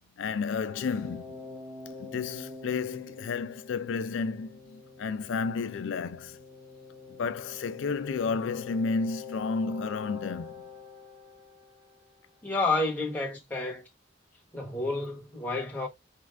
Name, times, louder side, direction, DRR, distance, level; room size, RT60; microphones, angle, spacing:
voice 1, 0.2-1.4 2.0-6.4 7.1-10.5, left 4 dB, 80° left, 0.4 m, -32 dB
sound 1, 0.7-12.3, left 5 dB, 15° right, 0.9 m, -45 dB
voice 2, 12.4-13.9 14.5-15.9, left 2 dB, 10° left, 1.0 m, -30 dB
4.2 x 2.5 x 3.2 m
head